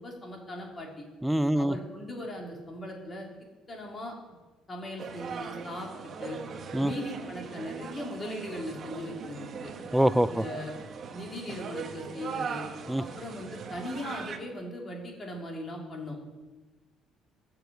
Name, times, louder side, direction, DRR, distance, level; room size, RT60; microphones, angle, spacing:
voice 1, 0.0-1.1 1.5-3.3 3.7-4.1 4.7-5.9 6.2-6.4 6.8-9.7 10.3-10.7 11.1-12.7 13.0-16.2, left 1 dB, 25° left, 0 dB, 3.0 m, -39 dB
voice 2, 1.2-1.8 6.7-6.9 9.9-10.4 12.9-13.0, right 1 dB, 5° right, 14 dB, 0.4 m, -24 dB
sound 1, 5.0-14.4, right 6 dB, 40° right, 1.2 m, -40 dB
19.0 x 7.0 x 7.9 m, 1.2 s
cardioid pair, 150°, 0 cm